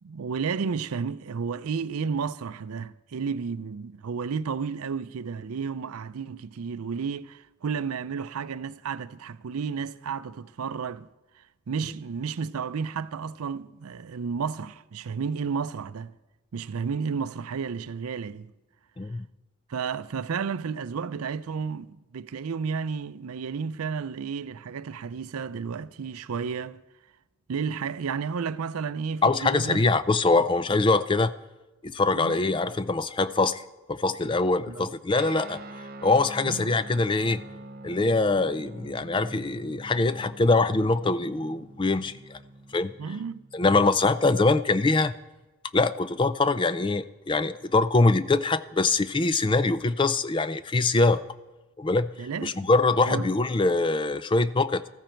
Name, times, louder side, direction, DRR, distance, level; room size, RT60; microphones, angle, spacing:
voice 1, 0.0-11.1 11.4-16.1 16.5-18.5 19.7-26.8 27.5-29.8 32.1-32.4 34.7-34.9 36.4-36.7 43.0-43.5 52.2-52.7 53.1-53.3, right 5 dB, 85° right, 0.5 m, -32 dB
voice 2, 19.0-19.3 29.2-31.3 31.8-33.6 33.9-35.6 36.0-37.4 37.8-42.4 42.7-42.9 43.5-45.1 45.7-51.2 51.8-52.1 52.4-54.9, left 3 dB, 20° left, 0.4 m, -23 dB
Guitar, 35.1-45.0, right 2 dB, 45° right, 0.7 m, -45 dB
14.0 x 14.0 x 4.5 m
head